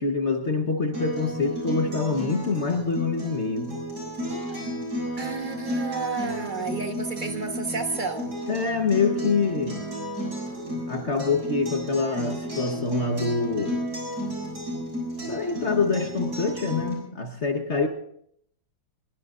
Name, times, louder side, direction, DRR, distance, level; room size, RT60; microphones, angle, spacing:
voice 1, 0.0-3.8 8.5-9.8 10.9-13.9 15.3-17.9, left 4 dB, 40° left, 3 dB, 1.4 m, -25 dB
Acoustic guitar, 0.9-16.9, equal, 55° right, 7.9 m, -33 dB
voice 2, 5.2-8.3, right 4 dB, 30° right, 6 dB, 1.4 m, -31 dB
23.5 x 22.0 x 2.6 m, 0.70 s
omnidirectional pair, 2.0 m